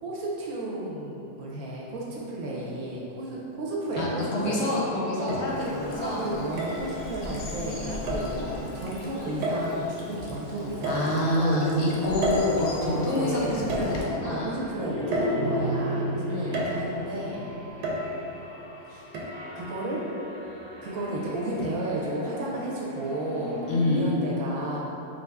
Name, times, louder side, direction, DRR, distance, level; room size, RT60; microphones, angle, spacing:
voice 1, 0.0-4.6 5.2-5.5 5.9-11.7 12.0-12.2 12.8-13.7 14.2-17.5 18.9-19.1 19.5-20.0 20.8-24.8, right 1 dB, 70° right, -5 dB, 1.1 m, -33 dB
sound 1, 2.9-3.0 4.0-4.6 5.3-5.9 6.6-6.9 8.1-8.4 9.4-9.9 10.8-11.5 12.2-13.1 13.7-14.4 15.1-15.9 16.5-17.1 17.8-18.4 19.1-19.2, equal, 85° right, 1.2 m, -31 dB
voice 2, 4.0-6.2 8.3-8.7 10.9-14.5 16.3-16.6 23.7-24.1, left 1 dB, 65° left, -4 dB, 0.7 m, -27 dB
sound 2, 4.3-24.2, equal, 30° right, 0.4 m, -38 dB
Bird vocalization bird call bird song / Stream, 5.4-14.0, left 2 dB, 90° left, 1.2 m, -40 dB
4.3 x 2.5 x 3.4 m, 3.0 s
omnidirectional pair, 1.7 m